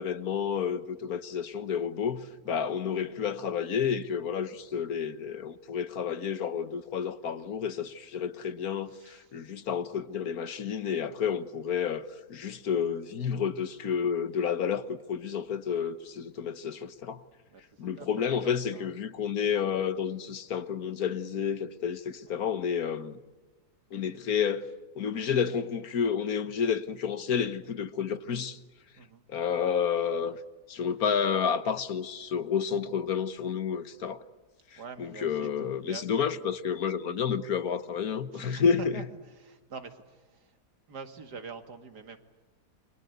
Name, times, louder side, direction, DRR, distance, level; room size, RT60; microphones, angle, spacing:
voice 1, 0.0-17.2 17.8-23.2 23.9-24.7 24.9-28.6 29.3-30.4 30.7-34.2 34.7-39.0, left 7 dB, 65° left, 1.6 m, -30 dB
voice 2, 2.4-2.7 8.9-9.4 11.7-11.8 12.5-12.6 17.5-18.9 19.2-19.5 22.3-22.4 29.0-29.2 34.8-36.3 38.3-40.6 40.9-42.2, right 5 dB, 85° right, 2.7 m, -46 dB
29.5 x 24.0 x 8.2 m
omnidirectional pair, 1.7 m